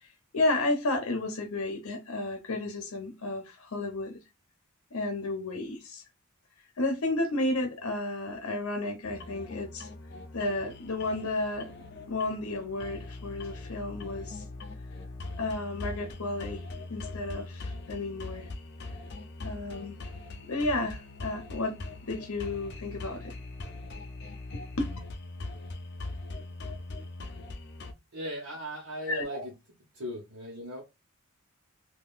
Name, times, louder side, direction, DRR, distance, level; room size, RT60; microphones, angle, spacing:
voice 1, 0.0-4.2 4.9-6.0 6.8-9.9 10.3-11.7 12.1-14.4 15.4-16.6 16.9-18.5 19.4-20.0 20.5-23.3 24.8-24.9 29.1-29.5, left 2 dB, 85° left, 0.8 m, -32 dB
sound 1, 9.0-27.9, left 2 dB, 55° left, 0.6 m, -41 dB
voice 2, 28.1-29.4 29.9-30.8, equal, 75° right, 1.1 m, -37 dB
3.7 x 2.7 x 2.5 m
head